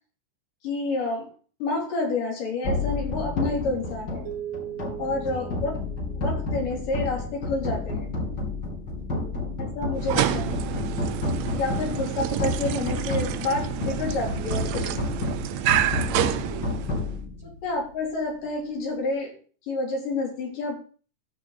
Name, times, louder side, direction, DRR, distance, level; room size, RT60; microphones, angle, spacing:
voice 1, 0.6-1.3 1.6-4.3 5.0-5.7 6.1-8.1 9.6-10.8 11.5-15.1 17.4-19.4 19.7-20.7, left 3 dB, 80° left, -2 dB, 5.1 m, -29 dB
sound 1, 2.6-17.9, left 2 dB, 30° left, 3.4 m, -30 dB
sound 2, 4.3-6.8, right 11 dB, 65° right, 2.0 m, -39 dB
voice 2, 5.2-5.7 9.0-10.3 16.4-17.6, right 1 dB, 5° right, 0 dB, 2.2 m, -47 dB
sound 3, 10.0-17.2, right 13 dB, 90° right, 2.3 m, -28 dB
13.5 x 6.1 x 4.0 m, 0.40 s
omnidirectional pair, 3.7 m